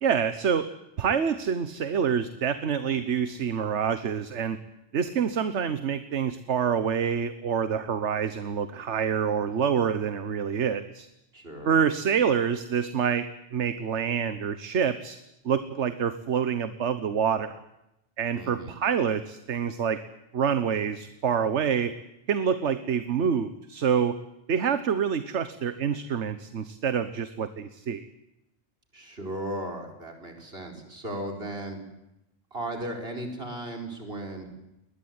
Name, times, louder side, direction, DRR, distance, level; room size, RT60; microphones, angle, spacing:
voice 1, 0.0-0.7 1.0-4.6 4.9-11.1 11.6-15.2 15.4-17.5 18.2-20.0 20.3-21.9 22.3-24.2 24.5-28.1, right 7 dB, 70° right, 12 dB, 1.4 m, -27 dB
voice 2, 11.3-11.7 18.3-18.8 28.9-31.8 32.5-34.5, right 1 dB, 55° right, 3 dB, 5.0 m, -36 dB
21.0 x 20.5 x 9.6 m, 0.89 s
omnidirectional pair, 1.2 m